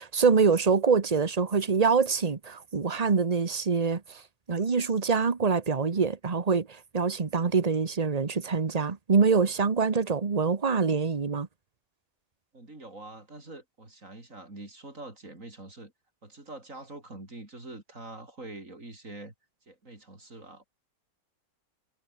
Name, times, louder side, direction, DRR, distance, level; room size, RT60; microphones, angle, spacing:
voice 1, 0.0-4.2 4.5-11.5, right 5 dB, 25° right, 0.9 m, -25 dB
voice 2, 12.5-15.9 16.2-19.3 19.7-20.6, right 2 dB, 40° right, 5.9 m, -45 dB
omnidirectional pair, 2.0 m